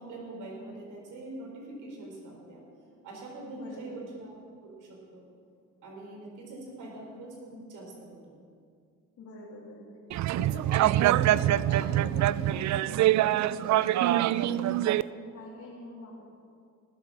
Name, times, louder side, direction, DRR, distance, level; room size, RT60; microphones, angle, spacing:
voice 1, 0.0-2.6 3.0-4.3 4.6-5.2 5.8-8.3 14.3-14.5, right 2 dB, 85° right, -1 dB, 4.3 m, -43 dB
voice 2, 3.5-4.0 9.2-10.0 10.4-10.9 11.2-16.2, left 2 dB, 70° left, -7 dB, 3.2 m, -44 dB
sound 1, 10.1-15.0, right 13 dB, 70° right, 0.4 m, -24 dB
18.5 x 7.8 x 7.4 m, 2.3 s
cardioid pair, 90°, 30 cm